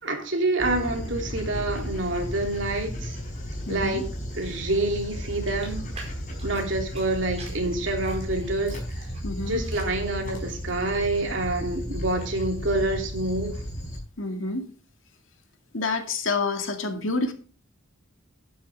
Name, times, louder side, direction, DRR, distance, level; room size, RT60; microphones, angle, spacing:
voice 1, 0.0-3.2 3.7-4.1 4.4-5.9 6.4-9.1 9.5-13.6, right 2 dB, 65° right, 2 dB, 3.1 m, -27 dB
Dog, 0.6-14.0, equal, 40° left, 5.1 m, -34 dB
voice 2, 3.7-4.0 9.2-9.6 14.2-14.7 15.7-17.3, left 3 dB, 75° left, 5 dB, 2.3 m, -28 dB
sound 1, 5.5-7.1 7.4-9.2 9.5-10.0 10.4-10.8, right 3 dB, 30° right, 5.0 m, -44 dB
12.0 x 10.5 x 3.6 m, 0.39 s
head